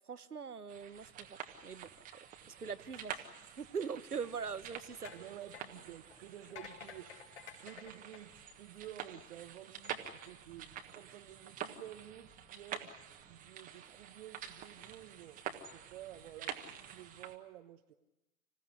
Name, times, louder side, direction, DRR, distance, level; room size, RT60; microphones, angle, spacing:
voice 1, 0.1-1.9 2.5-3.2 3.6-5.1, right 6 dB, 90° right, 14 dB, 1.2 m, -42 dB
sound 1, 0.7-17.4, right 9 dB, 20° right, 1.5 m, -48 dB
sound 2, 4.2-9.1 9.7-9.9, left 7 dB, 50° left, 4.6 m, -54 dB
voice 2, 5.1-12.9 13.3-17.9, right 12 dB, 45° right, 6 dB, 1.2 m, -52 dB
26.0 x 16.0 x 9.8 m, 0.99 s
figure-of-eight pair, 120°, 44 cm